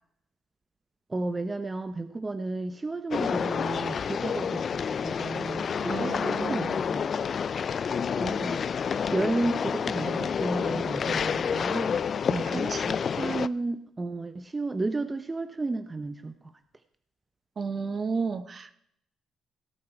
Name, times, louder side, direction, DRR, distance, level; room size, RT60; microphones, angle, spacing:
voice 1, 1.1-7.1 7.7-7.8 8.2-12.7 13.2-16.3, right 2 dB, 25° right, 10 dB, 0.9 m, -33 dB
sound 1, 3.1-13.5, left 7 dB, 50° left, 0.4 m, -29 dB
voice 2, 5.8-6.8 8.2-8.5 12.3-13.0 17.6-18.7, right 4 dB, 45° right, 11 dB, 1.1 m, -33 dB
17.5 x 8.3 x 4.5 m, 0.70 s
cardioid pair, 90°, 0 cm